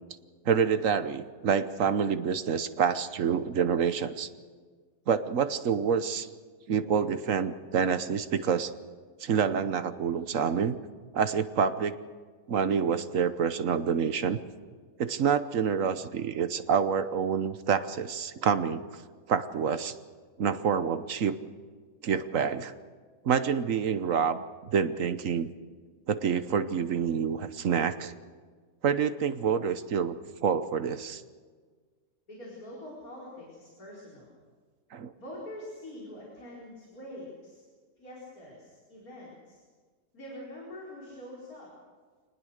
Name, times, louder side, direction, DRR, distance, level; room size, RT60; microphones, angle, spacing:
voice 1, 0.5-4.3 5.1-6.3 6.7-8.7 9.2-10.8 11.1-11.9 12.5-14.4 15.0-18.8 19.3-19.9 20.4-21.4 22.0-22.7 23.2-24.4 24.7-25.5 26.1-28.1 28.8-30.2 30.4-31.2 34.9-35.1, right 7 dB, 60° right, 11 dB, 1.3 m, -27 dB
voice 2, 32.3-34.3 35.2-37.6 38.0-39.6 40.1-41.7, left 1 dB, 65° left, -5 dB, 5.3 m, -44 dB
26.5 x 19.5 x 6.5 m, 1.5 s
omnidirectional pair, 1.6 m